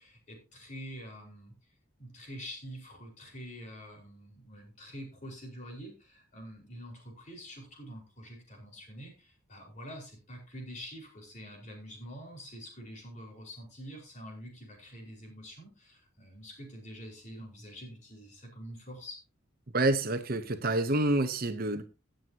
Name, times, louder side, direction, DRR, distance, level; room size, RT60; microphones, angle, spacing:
voice 1, 0.0-1.5 2.0-19.2, equal, 35° left, 5.0 m, -46 dB
voice 2, 19.7-21.8, right 2 dB, 45° right, 0.9 m, -28 dB
17.5 x 7.7 x 2.9 m
head